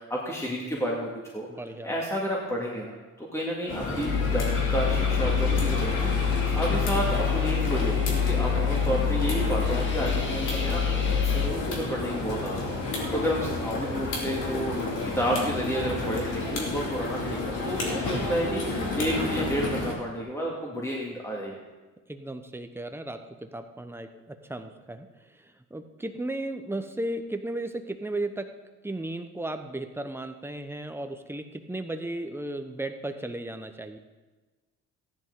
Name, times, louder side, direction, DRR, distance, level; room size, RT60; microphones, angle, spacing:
voice 1, 0.0-1.5 1.8-12.6 13.1-14.8 15.0-21.6, equal, 10° left, -3 dB, 2.1 m, -31 dB
voice 2, 1.5-2.0 22.1-28.5 28.8-34.0, right 1 dB, 10° right, 7 dB, 0.9 m, -35 dB
sound 1, 3.7-19.9, left 2 dB, 80° left, 2.6 m, -31 dB
sound 2, 4.0-11.5, left 7 dB, 40° left, 1.7 m, -26 dB
14.5 x 10.5 x 3.8 m, 1.2 s
cardioid pair, 90°, 30 cm